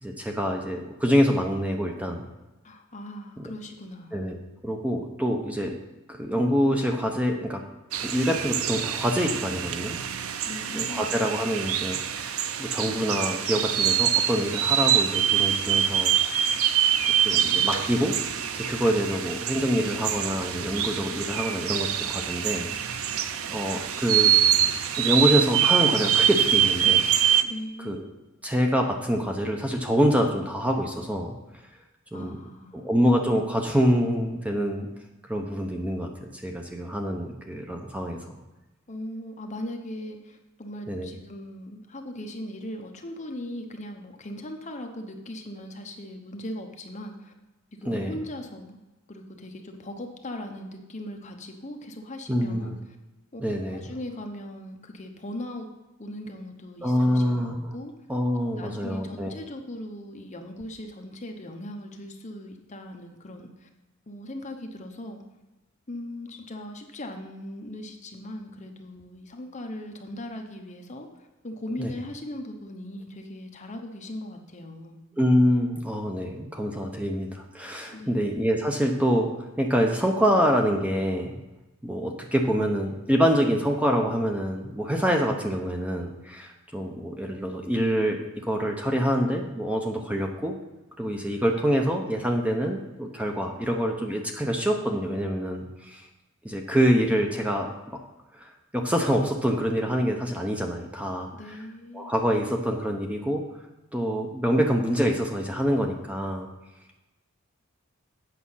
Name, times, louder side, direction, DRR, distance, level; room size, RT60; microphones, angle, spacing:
voice 1, 0.0-2.3 3.4-3.5 4.1-4.4 4.6-5.7 6.1-7.6 8.0-10.0 10.7-16.3 17.2-18.2 18.5-23.0 23.5-24.3 25.0-27.1 27.8-28.1 28.4-31.3 32.1-32.4 32.7-34.9 35.3-38.4 40.9-41.1 47.9-48.1 52.3-52.7 53.4-53.8 56.8-57.7 58.1-59.4 71.8-71.9 75.2-81.3 81.8-90.6 91.0-96.0 96.4-98.0 98.4-101.3 101.9-103.4 103.9-106.5, equal, 5° right, 2 dB, 0.7 m, -26 dB
voice 2, 2.6-4.3 10.5-11.1 27.4-28.0 32.1-32.8 38.9-47.3 47.8-48.8 49.1-52.8 53.3-53.4 53.7-55.7 56.0-57.9 58.6-63.7 64.1-65.2 65.9-75.0 77.9-78.2 101.3-102.1, left 1 dB, 35° left, 3 dB, 0.9 m, -39 dB
sound 1, 7.9-27.4, right 9 dB, 80° right, 0.5 m, -25 dB
8.4 x 5.7 x 5.6 m, 1.1 s
head